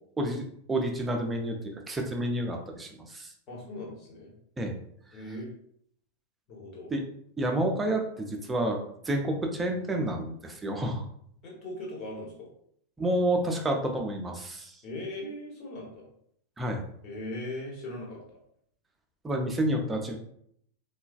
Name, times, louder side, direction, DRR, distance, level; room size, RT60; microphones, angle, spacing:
voice 1, 0.2-1.6 1.9-3.3 4.6-4.8 6.9-7.0 7.4-8.8 9.1-11.0 13.0-14.7 16.6-16.8 19.2-20.2, right 1 dB, 15° right, 2 dB, 0.5 m, -29 dB
voice 2, 3.5-4.3 5.1-5.5 6.5-6.9 11.4-12.5 14.8-16.1 17.0-18.4, left 1 dB, 35° left, -2 dB, 1.0 m, -39 dB
3.1 x 2.3 x 2.3 m, 0.69 s
figure-of-eight pair, 90°, 0 cm